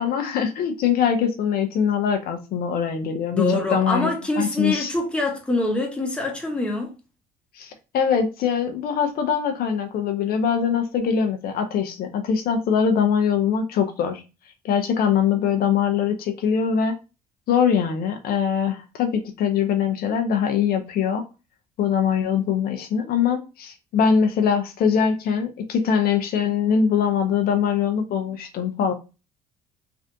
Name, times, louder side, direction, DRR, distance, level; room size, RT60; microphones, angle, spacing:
voice 1, 0.0-3.4 3.7-4.9 7.5-14.2 14.6-16.9 17.5-21.2 21.8-28.9, left 7 dB, 65° left, 0.5 m, -22 dB
voice 2, 3.3-6.9, left 2 dB, 5° left, 0.9 m, -24 dB
3.3 x 2.5 x 2.5 m
cardioid pair, 110°, 17 cm